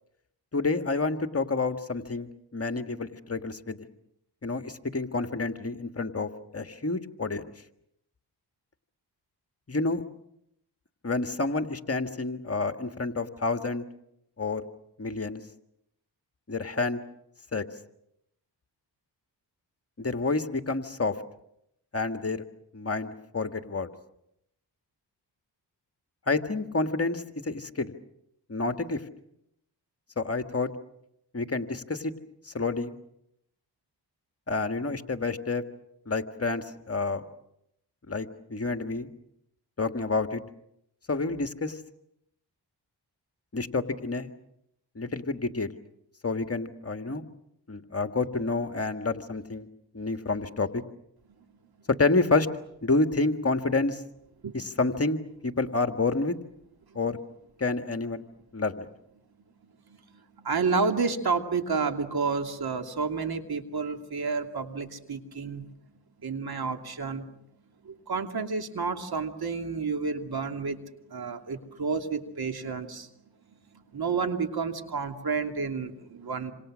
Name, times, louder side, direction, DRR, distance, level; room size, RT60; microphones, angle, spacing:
voice 1, 0.5-3.8 4.4-7.5 9.7-10.0 11.0-13.8 14.4-14.6 15.0-15.4 16.5-17.0 17.5-17.6 20.0-21.2 21.9-22.4 22.7-23.9 26.3-27.9 28.5-29.0 30.2-30.7 31.3-32.1 32.5-33.0 34.5-35.6 36.1-37.2 38.1-39.1 39.8-40.4 41.1-41.8 43.5-44.3 45.0-45.7 46.2-47.2 47.7-49.7 49.9-50.8 51.9-52.5 52.8-54.0 54.5-56.4 57.0-57.2 57.6-58.2 58.5-58.9, left 3 dB, 35° left, 8 dB, 1.8 m, -29 dB
voice 2, 60.4-65.6 66.2-67.2 68.1-70.8 71.1-73.1 73.9-76.5, right 4 dB, 60° right, 6 dB, 2.8 m, -30 dB
27.5 x 27.0 x 6.3 m, 0.79 s
cardioid pair, 65°, 42 cm